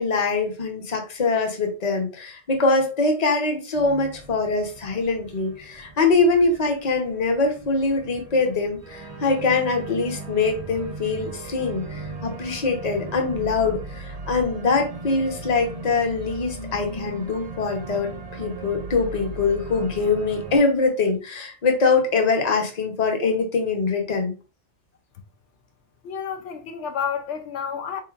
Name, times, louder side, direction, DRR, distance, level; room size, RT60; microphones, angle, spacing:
voice 1, 0.0-24.3, left 3 dB, 40° left, 0.8 m, -23 dB
Organ, 3.7-20.6, right 3 dB, 40° right, 0.7 m, -38 dB
voice 2, 26.0-28.0, left 7 dB, 80° left, 0.9 m, -30 dB
4.0 x 3.2 x 2.3 m
omnidirectional pair, 1.2 m